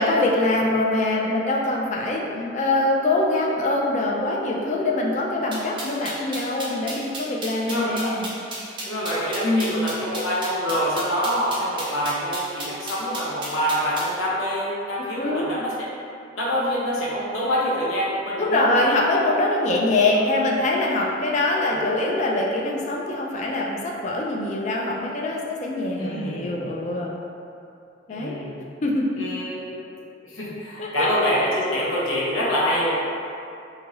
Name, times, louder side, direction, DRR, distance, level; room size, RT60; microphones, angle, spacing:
voice 1, 0.0-2.2 2.5-8.3 9.4-9.9 15.2-15.5 18.4-27.1 28.1-28.4 28.8-29.1 30.8-31.1, left 2 dB, 35° left, -2 dB, 0.3 m, -23 dB
voice 2, 2.0-2.5 6.7-6.8 7.7-8.1 8.8-15.9 16.4-18.8 20.1-20.2 21.4-21.8 26.0-26.5 28.1-28.6 29.2-29.7 30.2-32.9, equal, 90° left, -7 dB, 0.6 m, -26 dB
sound 1, 5.5-14.1, right 2 dB, 25° right, 0.5 m, -34 dB
2.6 x 2.5 x 3.0 m, 2.6 s
head